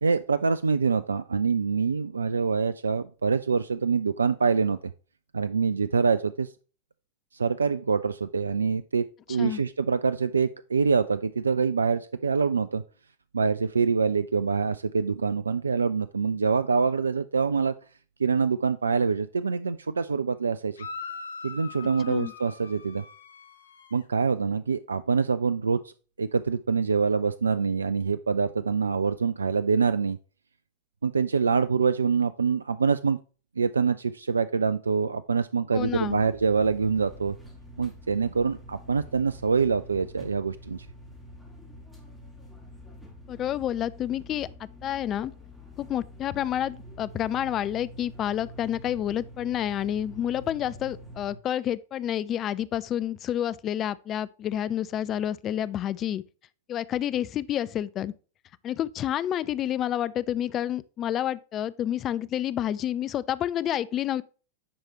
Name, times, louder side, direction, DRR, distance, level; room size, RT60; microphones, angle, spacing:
voice 1, 0.0-4.8 5.3-6.5 7.3-12.8 13.3-17.7 18.2-20.7 21.4-23.0 23.9-30.2 31.0-33.2 33.6-37.4 37.8-40.9, right 5 dB, 75° right, 0.3 m, -25 dB
sound 1, 20.8-24.0, left 5 dB, 70° left, 0.9 m, -41 dB
voice 2, 35.7-36.2 43.3-45.3 45.8-56.2 56.7-58.1 58.6-64.2, left 11 dB, 30° left, 0.4 m, -29 dB
sound 2, 35.7-51.4, equal, ahead, 3.0 m, -46 dB
10.0 x 4.8 x 3.0 m
figure-of-eight pair, 90°, 0 cm